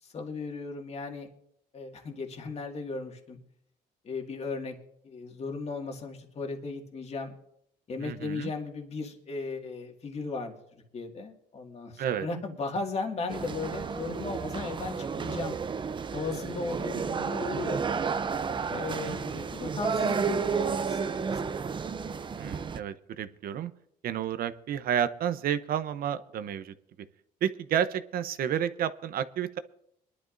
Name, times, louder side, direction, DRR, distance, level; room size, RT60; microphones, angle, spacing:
voice 1, 0.0-1.3 1.7-3.4 4.0-4.8 5.0-7.3 7.9-15.5 16.1-17.9 18.7-21.7, left 3 dB, 40° left, 2 dB, 2.1 m, -36 dB
voice 2, 8.0-8.5 12.0-12.3 18.7-19.2 22.4-23.7 24.0-26.7 27.4-29.6, right 9 dB, 60° right, 12 dB, 0.8 m, -31 dB
sound 1, 13.3-22.8, right 5 dB, 30° right, 0.6 m, -31 dB
23.0 x 11.5 x 2.6 m, 0.73 s
cardioid pair, 110°, 17 cm